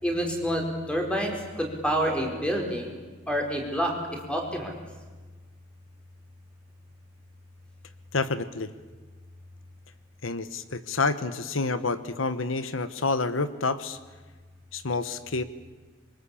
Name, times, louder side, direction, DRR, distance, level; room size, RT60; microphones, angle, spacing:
voice 1, 0.0-2.9 3.3-4.0 4.3-4.7, equal, 5° left, 2 dB, 5.0 m, -28 dB
voice 2, 8.1-8.7 10.2-14.0 14.7-15.4, left 3 dB, 85° left, 12 dB, 1.2 m, -28 dB
27.0 x 23.5 x 8.6 m, 1.3 s
head